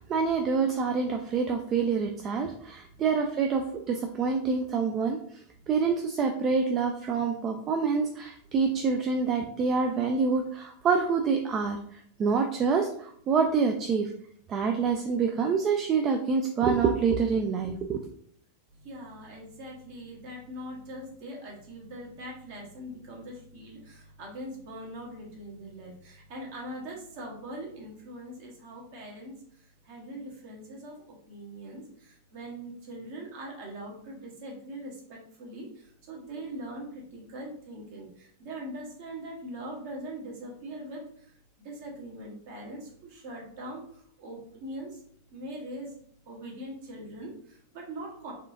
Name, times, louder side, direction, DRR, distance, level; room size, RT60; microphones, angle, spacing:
voice 1, 0.0-5.2 5.7-11.8 12.2-14.1 14.5-18.0, right 5 dB, 30° right, 4 dB, 0.3 m, -26 dB
voice 2, 18.7-41.3 41.6-45.0 45.3-46.0 46.3-48.3, right 1 dB, 50° right, -1 dB, 1.1 m, -42 dB
4.2 x 2.4 x 2.5 m, 0.63 s
figure-of-eight pair, 90°, 0 cm